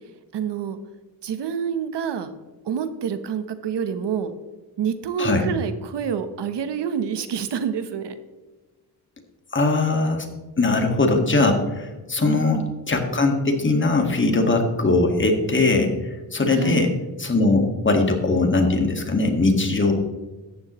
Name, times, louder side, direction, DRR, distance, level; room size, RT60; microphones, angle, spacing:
voice 1, 0.3-0.8 1.2-2.3 2.6-4.3 4.8-8.1 12.3-12.7 16.5-16.9, right 7 dB, 80° right, 10 dB, 1.1 m, -27 dB
voice 2, 9.5-10.3 10.6-16.9 17.2-19.9, left 3 dB, 30° left, 3 dB, 1.8 m, -20 dB
14.0 x 9.7 x 3.1 m, 1.2 s
wide cardioid pair, 120°, 41 cm